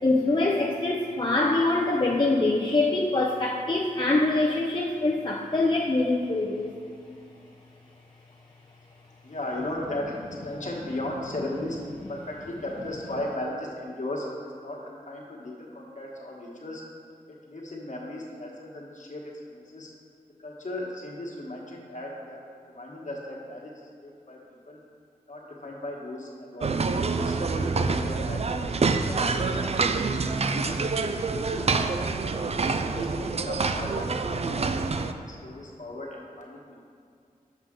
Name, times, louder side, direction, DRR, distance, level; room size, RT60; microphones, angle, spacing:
voice 1, 0.0-6.8, left 2 dB, 30° left, -2 dB, 0.6 m, -24 dB
voice 2, 9.2-10.1 10.4-11.8 12.1-16.8 17.3-19.2 19.5-19.9 20.4-22.4 22.7-24.4 24.7-24.8 25.3-26.8 27.1-30.8 31.2-32.3 32.8-36.7, left 1 dB, 55° left, -3 dB, 1.4 m, -37 dB
sound 1, 26.6-35.1, right 4 dB, 45° right, 0.4 m, -27 dB
7.4 x 5.1 x 3.7 m, 2.4 s
cardioid pair, 55°, 15 cm